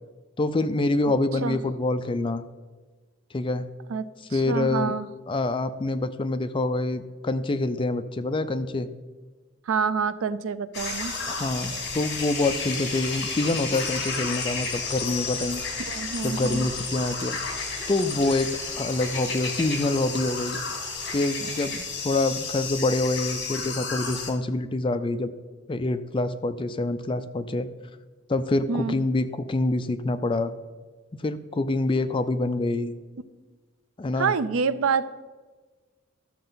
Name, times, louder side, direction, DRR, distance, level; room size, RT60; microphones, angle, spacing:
voice 1, 0.4-2.4 3.3-3.7 4.3-4.9 5.3-8.9 11.3-15.6 16.2-17.4 17.9-18.5 18.8-20.6 21.1-25.3 25.7-27.7 28.3-30.5 31.2-32.9 34.0-34.3, left 2 dB, 25° left, 11 dB, 0.4 m, -26 dB
voice 2, 3.9-5.1 9.7-11.1 15.9-16.7 28.7-29.0 34.2-35.3, right 5 dB, 85° right, 15 dB, 0.4 m, -27 dB
sound 1, 10.7-24.3, left 4 dB, 55° left, 1.8 m, -32 dB
13.0 x 6.6 x 3.9 m, 1.3 s
head